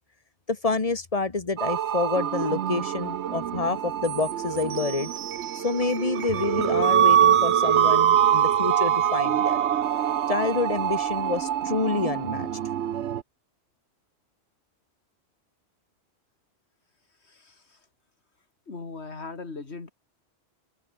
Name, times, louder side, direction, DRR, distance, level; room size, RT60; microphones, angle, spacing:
voice 1, 0.5-5.1 5.5-9.7 10.3-12.5, left 3 dB, 35° left, 1.4 m, -28 dB
sound 1, 1.6-13.2, right 10 dB, 85° right, 1.1 m, -24 dB
voice 2, 17.2-17.8 18.7-19.9, left 4 dB, 85° left, 2.7 m, -39 dB
omnidirectional pair, 1.1 m